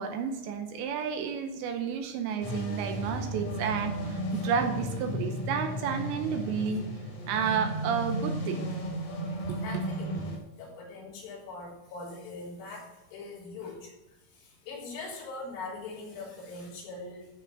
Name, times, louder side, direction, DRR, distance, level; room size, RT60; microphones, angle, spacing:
voice 1, 0.0-6.9 7.3-8.7 9.5-9.6, right 7 dB, 80° right, 6 dB, 2.9 m, -31 dB
sound 1, 2.4-10.4, equal, 40° left, 2.9 m, -34 dB
voice 2, 9.5-10.1 10.6-13.9 14.3-17.3, left 3 dB, 80° left, -5 dB, 6.2 m, -42 dB
14.0 x 5.9 x 6.0 m, 1.0 s
omnidirectional pair, 5.6 m